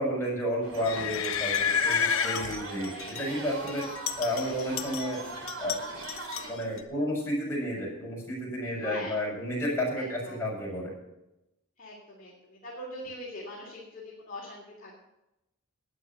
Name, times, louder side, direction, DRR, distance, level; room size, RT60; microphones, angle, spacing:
voice 1, 0.0-3.8 4.2-5.2 5.6-5.8 6.5-10.9, equal, 10° left, -5 dB, 6.3 m, -31 dB
sound 1, 0.6-6.5, right 2 dB, 80° right, 3.2 m, -40 dB
sound 2, 0.9-3.3 3.7-5.2 5.5-6.8, left 7 dB, 80° left, 1.2 m, -30 dB
voice 2, 8.8-9.1 10.0-10.4 11.8-14.9, left 1 dB, 40° left, -5 dB, 3.2 m, -42 dB
12.5 x 9.3 x 6.7 m, 0.90 s
head